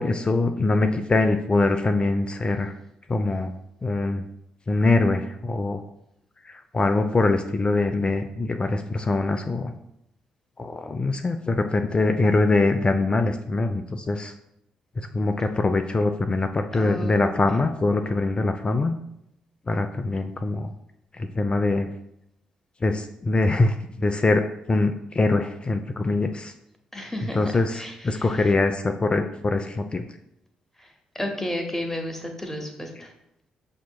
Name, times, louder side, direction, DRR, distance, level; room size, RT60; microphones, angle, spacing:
voice 1, 0.0-2.7 3.1-3.5 3.8-4.2 4.7-5.8 6.4-9.7 10.6-14.3 15.0-19.0 19.7-20.7 21.2-21.9 22.8-26.5 27.3-30.0, left 2 dB, 30° left, 6 dB, 0.3 m, -23 dB
voice 2, 16.7-17.2 26.9-28.5 30.8-33.1, left 1 dB, 10° left, 3 dB, 0.8 m, -33 dB
6.0 x 2.8 x 2.2 m, 0.80 s
hypercardioid pair, 40°, 3 cm